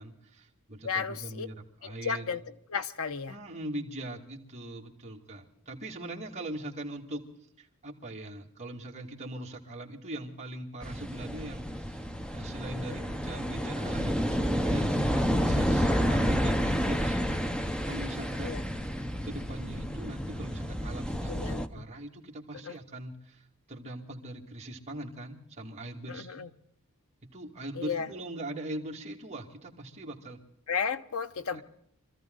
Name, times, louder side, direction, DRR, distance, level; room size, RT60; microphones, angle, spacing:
voice 1, 0.0-2.3 3.3-7.2 7.6-12.0 12.3-17.4 17.8-18.6 19.2-26.4 27.2-30.4 31.5-31.6, right 1 dB, 30° right, -1 dB, 2.4 m, -41 dB
voice 2, 0.8-1.5 1.8-2.4 2.7-3.3 18.4-18.6 21.3-21.8 22.6-22.8 26.1-26.5 27.8-28.1 30.7-31.6, left 6 dB, 75° left, 11 dB, 0.9 m, -33 dB
sound 1, 10.8-21.7, equal, 5° left, 0.8 m, -30 dB
25.5 x 14.0 x 3.9 m, 0.71 s
head